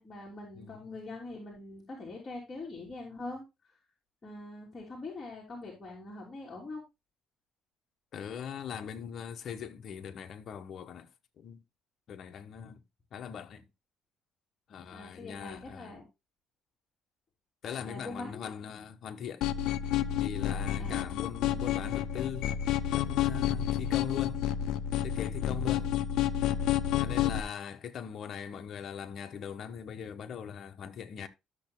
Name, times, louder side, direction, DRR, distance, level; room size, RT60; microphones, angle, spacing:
voice 1, 0.0-3.4 4.2-6.8 14.9-16.0 17.8-18.5 20.8-21.0, left 2 dB, 25° left, 3.2 m, -43 dB
voice 2, 0.5-1.0 8.1-11.1 11.4-11.6 12.1-12.8 13.1-13.7 14.7-16.0 17.6-19.5 20.2-22.5 22.9-24.4 25.0-25.9 27.0-31.3, left 8 dB, 55° left, 1.3 m, -41 dB
sound 1, 19.4-27.4, left 11 dB, 75° left, 0.7 m, -30 dB
13.0 x 7.0 x 2.2 m
cardioid pair, 110°, 0 cm